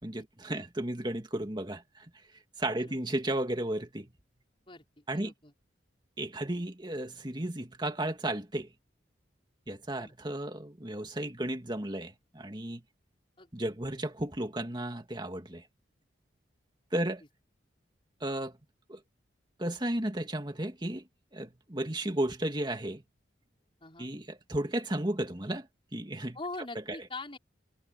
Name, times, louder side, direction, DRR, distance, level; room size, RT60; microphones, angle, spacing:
voice 1, 0.0-2.1 2.6-4.1 5.1-5.3 6.2-8.7 9.7-12.8 13.5-15.6 16.9-17.2 18.2-18.6 18.9-19.0 19.6-21.0 21.3-23.0 24.0-25.7 25.9-26.4 26.9-27.0, right 1 dB, 25° right, 2.2 m, -34 dB
voice 2, 4.7-5.5 10.0-10.2 13.4-13.5 16.9-17.0 23.8-24.1 26.3-27.4, left 3 dB, 30° left, 5.0 m, -43 dB
head